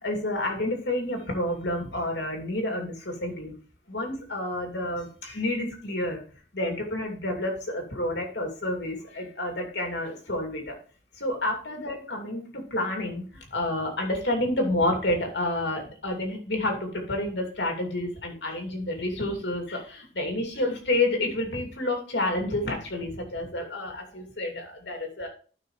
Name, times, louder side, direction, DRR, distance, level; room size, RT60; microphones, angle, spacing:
voice 1, 0.0-3.5 3.9-6.2 6.5-10.8 11.1-25.3, left 1 dB, 85° left, 2 dB, 2.7 m, -29 dB
12.0 x 5.8 x 3.2 m, 0.39 s
head